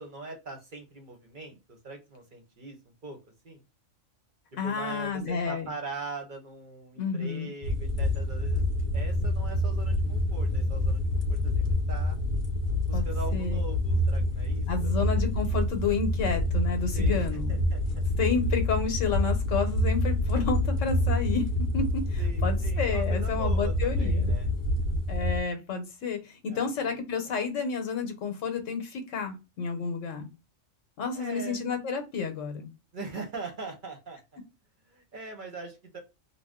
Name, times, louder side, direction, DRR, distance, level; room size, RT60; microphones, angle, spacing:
voice 1, 0.0-2.8 3.0-3.2 3.4-3.6 4.6-8.6 8.9-11.0 11.3-12.2 12.9-15.1 16.9-18.0 22.2-24.5 26.5-26.7 27.2-27.3 31.1-31.6 32.9-34.2 34.9-36.0, right 3 dB, 50° right, 3 dB, 0.7 m, -41 dB
voice 2, 4.6-5.7 7.0-7.5 12.9-13.1 13.3-13.6 14.7-17.6 18.2-21.4 21.7-24.3 25.1-30.3 31.0-32.7, left 5 dB, 80° left, 5 dB, 1.0 m, -30 dB
sound 1, 7.6-25.4, left 1 dB, 50° left, 0.7 m, -27 dB
2.5 x 2.1 x 3.5 m, 0.26 s
omnidirectional pair, 1.3 m